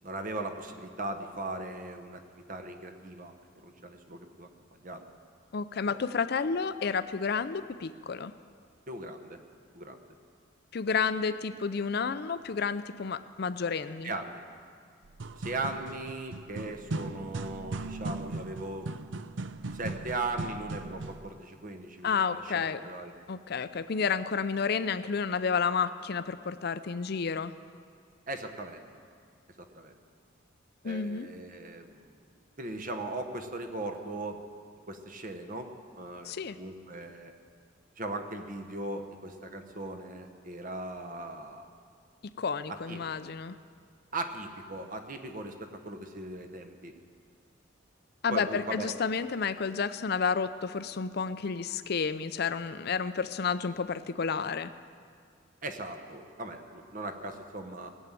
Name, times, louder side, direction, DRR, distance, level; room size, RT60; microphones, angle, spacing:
voice 1, 0.0-5.0 5.9-6.0 8.9-9.4 9.7-10.0 14.0-14.4 15.4-18.9 19.7-23.1 28.3-28.8 29.6-29.9 30.8-32.2 32.6-34.4 34.9-35.7 36.0-37.3 38.0-41.7 42.9-43.0 44.1-46.9 48.3-48.9 55.6-57.9, right 2 dB, 45° right, 7 dB, 1.1 m, -38 dB
voice 2, 5.5-8.3 10.7-14.1 22.0-22.8 23.3-27.5 30.8-31.3 36.2-36.6 42.4-43.6 48.2-54.7, left 5 dB, 55° left, 12 dB, 0.5 m, -31 dB
sound 1, 15.0-21.3, right 3 dB, 65° right, 0.5 m, -38 dB
17.5 x 7.3 x 9.1 m, 2.1 s
head